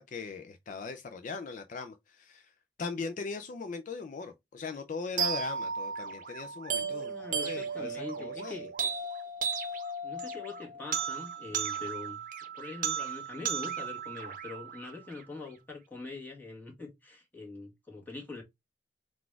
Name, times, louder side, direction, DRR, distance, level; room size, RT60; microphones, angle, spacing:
voice 1, 0.0-8.7, left 4 dB, 45° left, 0.4 m, -40 dB
sound 1, 5.2-15.2, right 6 dB, 50° right, 0.7 m, -35 dB
voice 2, 6.8-8.9 10.0-12.2 12.6-18.4, left 3 dB, 10° left, 1.5 m, -43 dB
4.0 x 2.4 x 4.5 m
head